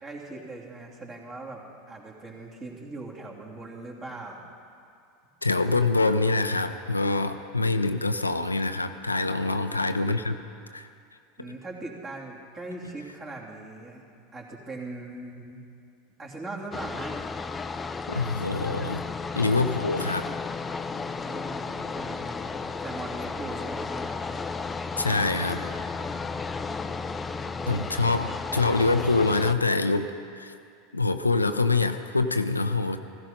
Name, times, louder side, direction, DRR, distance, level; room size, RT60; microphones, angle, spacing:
voice 1, 0.0-4.4 9.4-9.7 11.4-14.1 14.3-15.7 16.2-17.2 19.1-19.3 20.7-22.5 22.8-24.1 26.2-26.9 27.6-27.8, right 2 dB, 30° right, -2 dB, 3.1 m, -40 dB
voice 2, 5.4-10.4 10.7-10.9 18.1-19.0 19.3-20.3 25.0-25.6 27.7-30.1 30.4-30.5 30.9-33.0, left 3 dB, 90° left, 8 dB, 0.6 m, -25 dB
sound 1, 16.7-29.5, left 4 dB, 15° left, 0.6 m, -33 dB
15.5 x 15.5 x 5.3 m, 2.4 s
figure-of-eight pair, 85°, 0 cm